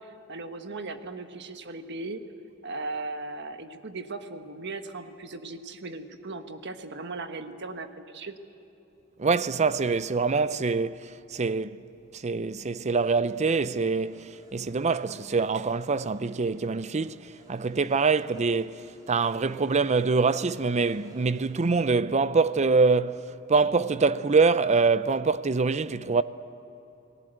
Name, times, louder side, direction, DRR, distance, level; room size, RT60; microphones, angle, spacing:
voice 1, 0.0-2.2 2.6-8.3, right 3 dB, 55° right, 1.5 m, -37 dB
voice 2, 9.2-11.8 12.1-23.2 23.5-26.2, right 4 dB, 35° right, 0.6 m, -25 dB
sound 1, 12.7-21.9, right 1 dB, 20° right, 3.3 m, -56 dB
29.5 x 19.0 x 8.0 m
head